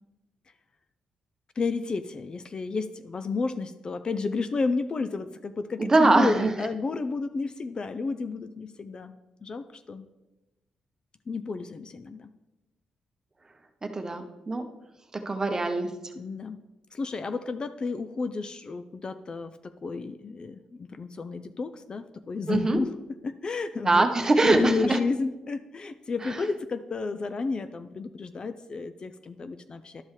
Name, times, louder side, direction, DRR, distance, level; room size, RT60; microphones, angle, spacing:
voice 1, 1.6-9.1 9.4-10.1 11.3-12.3 16.2-16.6 16.9-22.9 23.2-30.0, left 4 dB, 40° left, 11 dB, 0.4 m, -31 dB
voice 2, 5.8-6.5 13.8-14.6 15.1-15.9 22.5-22.8 23.8-25.0 26.2-26.4, right 2 dB, 25° right, 7 dB, 0.8 m, -23 dB
11.5 x 5.3 x 3.2 m, 1.0 s
cardioid pair, 85°, 2 cm